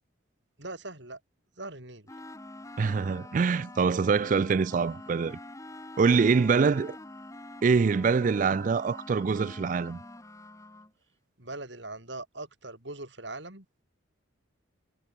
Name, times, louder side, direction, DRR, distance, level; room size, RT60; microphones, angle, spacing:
voice 1, 0.6-1.2 1.6-2.1 6.6-6.8 11.4-13.7, right 2 dB, 60° right, 5.6 m, -41 dB
sound 1, 2.1-10.9, left 1 dB, 15° left, 1.7 m, -46 dB
voice 2, 2.8-5.4 6.0-7.0 7.6-10.0, right 5 dB, 40° right, 0.3 m, -24 dB
head